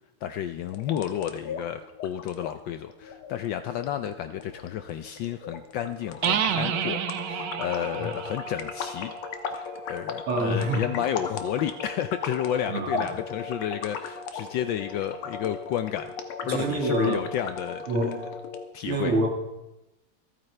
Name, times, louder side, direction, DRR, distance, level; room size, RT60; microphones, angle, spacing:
voice 1, 0.2-9.1 9.5-16.1 16.4-18.1 18.7-19.2, left 10 dB, 75° left, 9 dB, 1.2 m, -31 dB
sound 1, 0.6-18.6, left 5 dB, 90° left, 2.0 m, -37 dB
sound 2, 6.2-9.9, right 9 dB, 65° right, 1.3 m, -30 dB
voice 2, 10.3-11.1 12.7-13.1 16.4-17.3 17.9-18.3 18.9-19.3, right 2 dB, 85° right, 2 dB, 2.6 m, -27 dB
27.0 x 9.1 x 3.3 m, 0.99 s
omnidirectional pair, 2.4 m